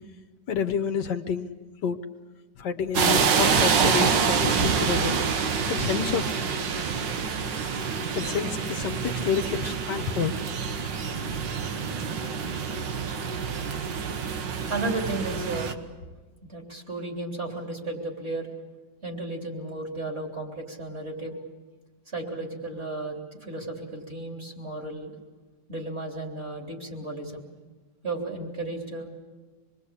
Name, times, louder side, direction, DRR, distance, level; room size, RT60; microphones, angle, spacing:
voice 1, 0.5-1.5 1.8-2.0 2.6-5.2 5.7-6.4 8.1-10.3, left 7 dB, 70° left, 7 dB, 1.6 m, -28 dB
sound 1, 2.9-15.7, right 6 dB, 75° right, 1.9 m, -27 dB
voice 2, 14.7-15.8 16.5-18.5 19.0-21.4 22.1-25.1 25.7-27.4 28.0-29.1, right 2 dB, 35° right, 1 dB, 3.9 m, -34 dB
26.0 x 21.5 x 8.4 m, 1.3 s
omnidirectional pair, 2.0 m